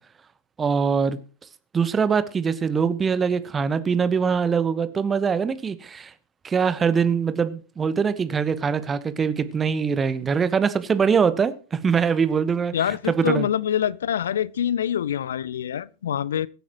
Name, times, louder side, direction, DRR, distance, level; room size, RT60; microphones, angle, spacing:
voice 1, 0.6-1.2 1.7-6.1 6.4-12.7 13.1-13.5, right 6 dB, 20° right, 1.0 m, -23 dB
voice 2, 12.7-16.5, left 9 dB, 65° left, 0.5 m, -25 dB
22.0 x 8.4 x 3.0 m
figure-of-eight pair, 90°, 0 cm